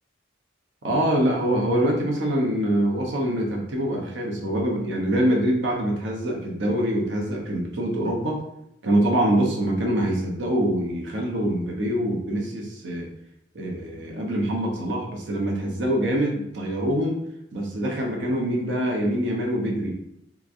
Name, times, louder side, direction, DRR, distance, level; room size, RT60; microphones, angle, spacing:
voice 1, 0.8-8.4 8.8-13.1 13.5-17.2 17.5-20.0, right 1 dB, 70° right, 0 dB, 0.8 m, -24 dB
3.5 x 3.0 x 2.5 m, 0.77 s
head